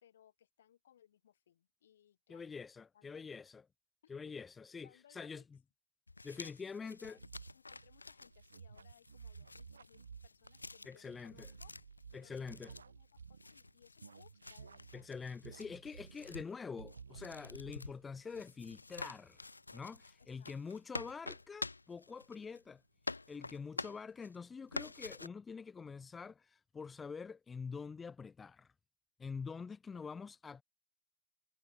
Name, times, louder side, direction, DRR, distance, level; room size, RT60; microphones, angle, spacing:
voice 1, 0.0-2.5 2.9-3.2 4.0-4.3 4.8-5.4 6.4-7.2 7.5-11.7 12.1-15.1 20.2-20.8 23.3-24.0, left 10 dB, 70° left, 2.4 m, -66 dB
voice 2, 2.3-3.6 4.1-5.4 6.2-7.2 10.9-11.5 12.1-12.7 14.9-19.4 19.7-22.8 23.3-28.7 29.2-30.6, left 5 dB, 20° left, 0.6 m, -46 dB
sound 1, 6.1-22.7 23.0-24.4 24.7-25.3, left 3 dB, 85° left, 0.4 m, -48 dB
sound 2, 7.2-13.7 14.0-16.5 16.8-17.8, right 6 dB, 80° right, 0.7 m, -55 dB
sound 3, 7.7-24.2, right 22 dB, 45° right, 7.7 m, -85 dB
figure-of-eight pair, 90°, 0 cm